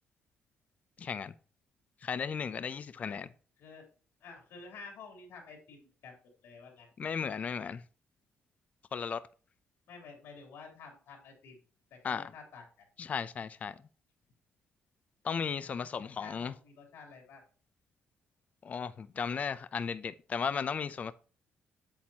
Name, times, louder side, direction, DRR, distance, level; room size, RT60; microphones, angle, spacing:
voice 1, 1.0-1.3 2.0-3.3 7.0-7.8 8.9-9.2 12.0-12.2 13.0-13.8 15.2-16.5 18.6-21.1, left 6 dB, 35° left, 0.4 m, -35 dB
voice 2, 4.2-6.9 9.9-11.6 11.9-13.1 15.6-17.4, left 4 dB, 80° left, 3.2 m, -51 dB
8.5 x 7.8 x 2.8 m
cardioid pair, 130°, 4 cm